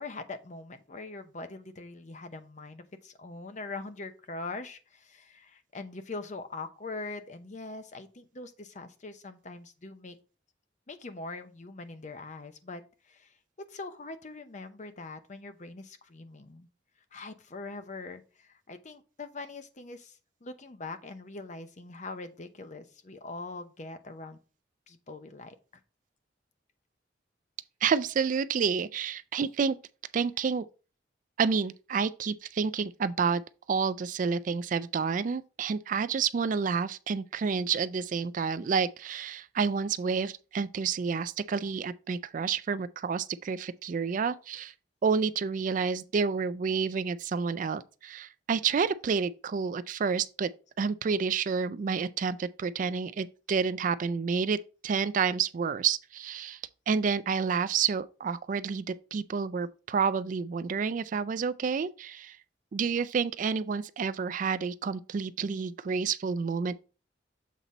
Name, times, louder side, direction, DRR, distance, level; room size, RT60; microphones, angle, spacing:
voice 1, 0.0-10.2 10.9-12.8 13.1-13.3 13.7-16.7 17.1-24.4 24.9-25.5, left 3 dB, 40° left, 0.8 m, -42 dB
voice 2, 27.8-29.8 30.1-30.7 31.4-33.4 33.7-44.7 45.0-50.5 50.8-54.6 54.8-56.6 56.9-62.4 62.7-66.7, right 5 dB, 45° right, 0.3 m, -29 dB
7.4 x 4.0 x 4.0 m
head